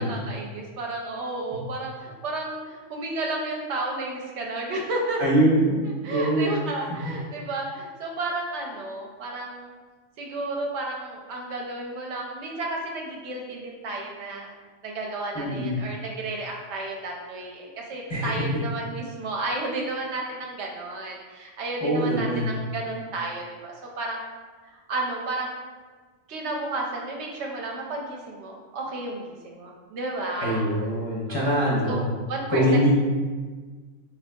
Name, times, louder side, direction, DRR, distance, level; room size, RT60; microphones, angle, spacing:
voice 1, 0.0-5.2 6.0-9.7 10.2-14.5 14.8-24.2 24.6-25.6 26.3-30.6 31.3-32.0 32.3-32.9, right 2 dB, 70° right, -1 dB, 0.8 m, -32 dB
voice 2, 5.2-5.8 6.1-6.6 15.3-15.7 18.1-18.3 21.8-22.6 30.4-32.1 32.5-32.9, right 1 dB, 30° left, -8 dB, 0.5 m, -23 dB
3.5 x 3.5 x 2.2 m, 1.4 s
omnidirectional pair, 1.3 m